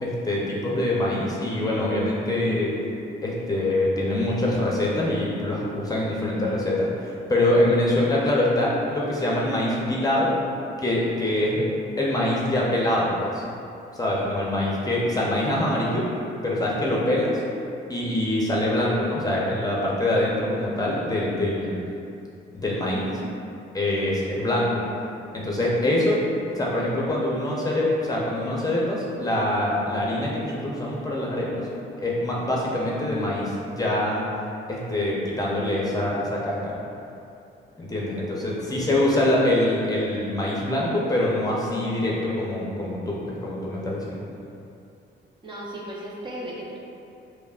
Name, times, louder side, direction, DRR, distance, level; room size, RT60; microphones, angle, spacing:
voice 1, 0.0-2.7 3.2-10.3 10.8-11.7 12.0-13.4 13.9-16.0 16.4-17.3 17.9-21.8 22.5-23.1 23.7-24.7 25.3-26.2 26.5-31.7 32.0-34.2 34.7-36.7 37.8-44.2, left 1 dB, 20° left, -5 dB, 0.7 m, -24 dB
voice 2, 45.4-46.8, right 1 dB, 25° right, -5 dB, 0.6 m, -36 dB
5.1 x 2.1 x 2.4 m, 2.6 s
cardioid pair, 90°, 20 cm